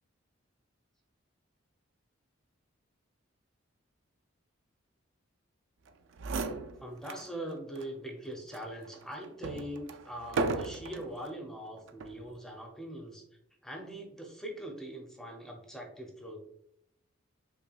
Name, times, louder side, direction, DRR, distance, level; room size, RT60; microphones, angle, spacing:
sound 1, 5.9-6.0 6.2-7.3 7.7-7.9 8.5-11.1 11.9-12.2, right 3 dB, 60° right, 0.3 m, -36 dB
voice 1, 6.8-13.2 13.6-16.4, right 1 dB, 5° left, 0 dB, 0.5 m, -42 dB
5.7 x 2.2 x 2.3 m, 0.75 s
head